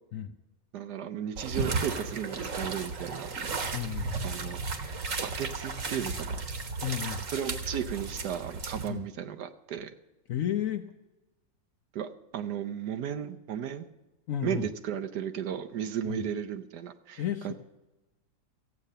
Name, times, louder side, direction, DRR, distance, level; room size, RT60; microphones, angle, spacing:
voice 1, 0.7-3.3 4.2-4.6 5.2-6.4 7.3-9.9 11.9-13.9 14.4-17.5, right 9 dB, 70° right, 9 dB, 1.2 m, -35 dB
sound 1, 1.4-8.9, right 4 dB, 45° right, 1.5 m, -34 dB
voice 2, 3.7-4.1 6.8-7.2 8.9-9.0 10.3-10.9 14.3-14.7 16.0-16.2 17.2-17.5, left 10 dB, 65° left, 7 dB, 0.8 m, -32 dB
14.5 x 8.7 x 6.6 m, 1.0 s
omnidirectional pair, 2.0 m